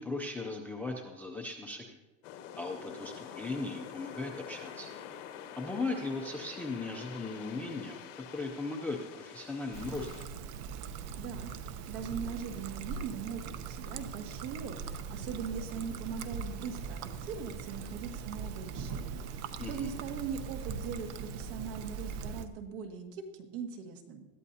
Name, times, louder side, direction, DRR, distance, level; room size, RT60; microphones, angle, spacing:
voice 1, 0.0-1.9 2.6-4.9 5.6-10.1 19.6-19.9, left 3 dB, 5° left, 3 dB, 0.3 m, -38 dB
sound 1, 2.2-10.3, left 9 dB, 65° left, 1.5 m, -46 dB
Trickle dribble, 9.7-22.5, right 5 dB, 40° right, 0.8 m, -41 dB
voice 2, 11.2-11.5 11.9-14.8 15.1-19.2 19.6-24.3, right 7 dB, 60° right, 4 dB, 2.0 m, -40 dB
20.5 x 13.5 x 2.7 m, 1.2 s
supercardioid pair, 155°, 41 cm